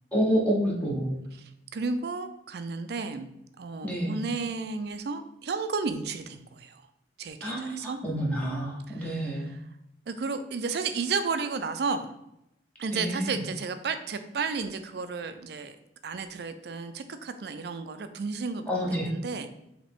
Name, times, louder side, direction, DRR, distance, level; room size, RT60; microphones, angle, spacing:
voice 1, 0.1-1.2 3.8-4.2 7.4-9.5 12.9-13.4 18.7-19.1, equal, 10° left, -4 dB, 0.8 m, -28 dB
voice 2, 1.4-3.3 3.6-6.8 7.2-8.0 8.9-9.6 10.1-12.1 12.8-15.8 16.0-19.5, right 4 dB, 60° right, 10 dB, 0.4 m, -33 dB
5.0 x 2.9 x 3.5 m, 0.83 s
head